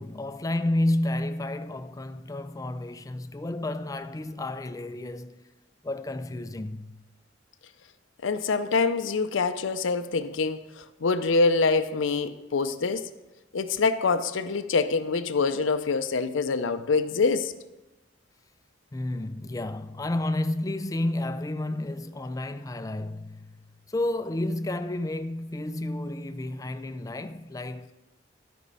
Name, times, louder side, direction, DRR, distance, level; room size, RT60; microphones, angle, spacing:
voice 1, 0.0-5.5 5.8-7.0 18.9-27.9, left 1 dB, 20° left, 0.4 m, -31 dB
voice 2, 8.2-13.1 13.5-17.5, left 4 dB, 85° left, 0.5 m, -25 dB
12.0 x 5.2 x 5.4 m
head